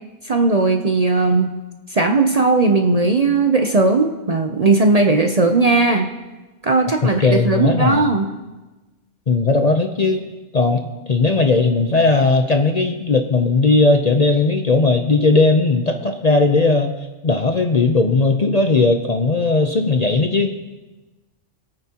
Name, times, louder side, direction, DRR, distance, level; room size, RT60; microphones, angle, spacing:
voice 1, 0.2-1.6 1.9-6.1 6.6-8.3, right 3 dB, 40° right, 4 dB, 0.6 m, -17 dB
voice 2, 7.2-8.0 9.3-10.3 10.5-16.9 17.2-20.6, left 3 dB, 40° left, 5 dB, 0.7 m, -17 dB
24.5 x 8.9 x 2.9 m, 1.2 s
omnidirectional pair, 1.3 m